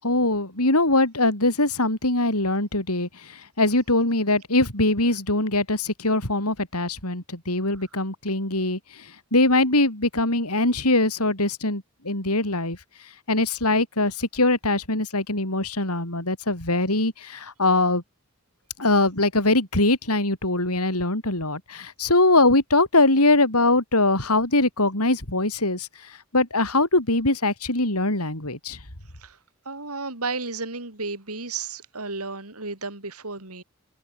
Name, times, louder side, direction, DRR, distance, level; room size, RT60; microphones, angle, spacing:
voice 1, 0.0-12.8 13.3-18.0 18.8-28.8, left 2 dB, 85° left, 7.9 m, -22 dB
voice 2, 29.7-33.6, right 3 dB, 80° right, 5.7 m, -33 dB
open air
head